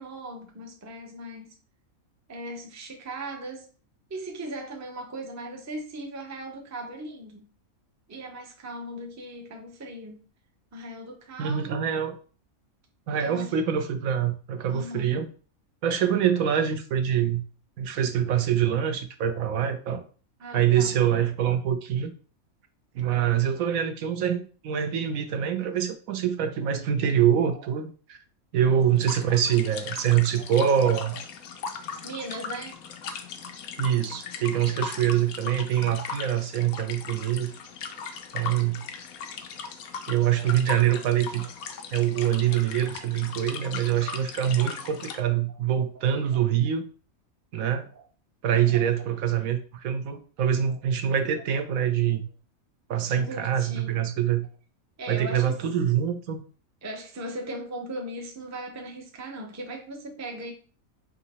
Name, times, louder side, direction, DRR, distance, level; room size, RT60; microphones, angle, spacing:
voice 1, 0.0-1.5 2.3-3.7 4.1-7.5 8.1-10.2 10.7-11.9 13.2-13.5 14.7-15.1 20.4-20.9 27.4-27.7 28.8-29.0 30.4-30.5 30.8-31.2 32.0-32.8 40.4-40.5 40.9-41.1 41.4-41.5 42.2-42.6 46.3-46.5 47.9-48.0 48.5-48.9 50.6-50.8 53.1-54.0 55.0-55.6 56.8-60.5, right 1 dB, 20° right, 0.4 m, -38 dB
voice 2, 11.4-12.1 13.1-15.3 15.8-17.4 17.8-20.0 20.5-22.1 22.9-28.2 28.5-31.2 33.8-37.5 38.3-38.8 40.1-41.5 41.9-46.8 47.5-47.9 48.4-52.3 52.9-54.5 55.1-56.4, right 9 dB, 75° right, 1.0 m, -25 dB
sound 1, 29.0-45.2, left 6 dB, 85° left, 1.1 m, -38 dB
3.8 x 2.8 x 4.1 m
omnidirectional pair, 1.5 m